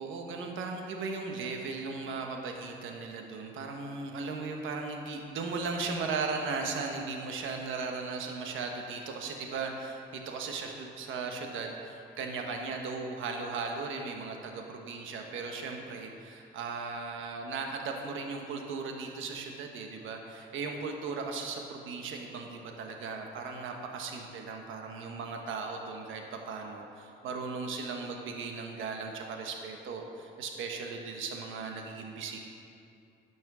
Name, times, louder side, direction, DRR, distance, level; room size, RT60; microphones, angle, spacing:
voice 1, 0.0-32.4, right 4 dB, 85° right, 3 dB, 1.2 m, -37 dB
10.5 x 6.1 x 6.1 m, 2.5 s
cardioid pair, 90°, 20 cm